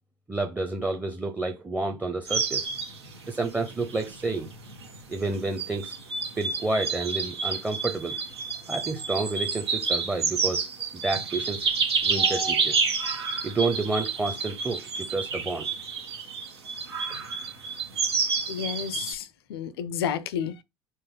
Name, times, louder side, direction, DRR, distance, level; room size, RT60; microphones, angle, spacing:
voice 1, 0.3-2.7 3.3-4.5 5.1-5.9 6.4-8.2 8.7-10.7 10.9-11.7 12.0-12.9 13.4-15.7, right 3 dB, 10° right, 0.9 m, -30 dB
sound 1, 2.3-19.1, right 5 dB, 75° right, 1.5 m, -29 dB
voice 2, 18.5-20.6, left 8 dB, 65° left, 0.5 m, -31 dB
4.3 x 3.0 x 3.9 m
figure-of-eight pair, 70°, 14 cm